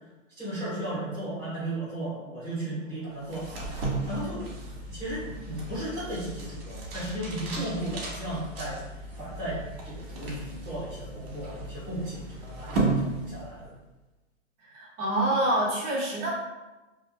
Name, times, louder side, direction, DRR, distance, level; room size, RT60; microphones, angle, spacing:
voice 1, 0.4-3.7 4.1-4.5 4.9-8.8 9.2-13.7, right 1 dB, 5° left, -12 dB, 0.6 m, -35 dB
sound 1, 3.2-13.8, right 2 dB, 50° right, 1.3 m, -35 dB
voice 2, 14.7-16.3, right 1 dB, 25° right, -5 dB, 1.0 m, -26 dB
4.4 x 2.7 x 2.3 m, 1.1 s
hypercardioid pair, 145°, 39 cm